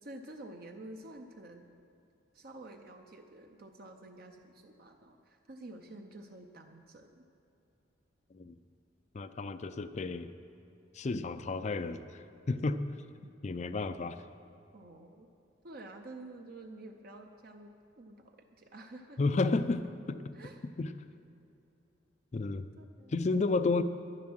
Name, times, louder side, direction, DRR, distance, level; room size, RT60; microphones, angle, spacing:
voice 1, 0.0-1.7 2.3-7.2 14.7-15.3 15.6-19.2 20.3-20.6 22.8-23.2, right 2 dB, 50° right, 4 dB, 0.7 m, -49 dB
voice 2, 9.1-10.3 10.9-12.8 13.4-14.2 19.2-20.4 20.8-20.9 22.3-22.7 23.1-23.8, left 3 dB, 35° left, 11 dB, 0.4 m, -32 dB
10.5 x 10.5 x 6.2 m, 2.8 s
head